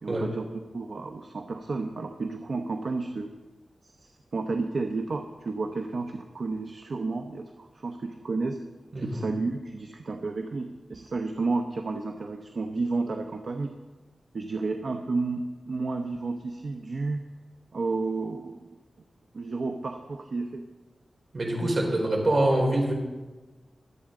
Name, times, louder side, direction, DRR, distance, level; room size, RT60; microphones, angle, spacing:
voice 1, 0.0-3.3 4.0-8.6 9.0-13.7 14.3-17.2 17.7-18.7 19.3-20.6, right 3 dB, 60° right, 4 dB, 0.9 m, -31 dB
voice 2, 8.9-9.2 21.3-22.9, right 1 dB, 45° right, -1 dB, 3.9 m, -25 dB
24.0 x 8.5 x 3.9 m, 1.2 s
wide cardioid pair, 120°, 0 cm